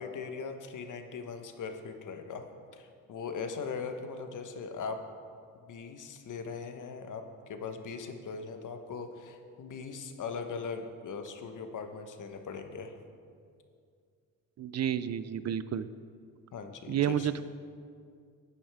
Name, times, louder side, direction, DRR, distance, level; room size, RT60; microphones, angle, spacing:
voice 1, 0.0-2.5 2.7-5.0 5.7-12.9 16.5-17.3, left 5 dB, 60° left, 6 dB, 1.1 m, -40 dB
voice 2, 14.6-15.9 16.9-17.4, right 9 dB, 50° right, 14 dB, 0.4 m, -30 dB
12.5 x 8.7 x 3.5 m, 2.3 s
cardioid pair, 90°, 36 cm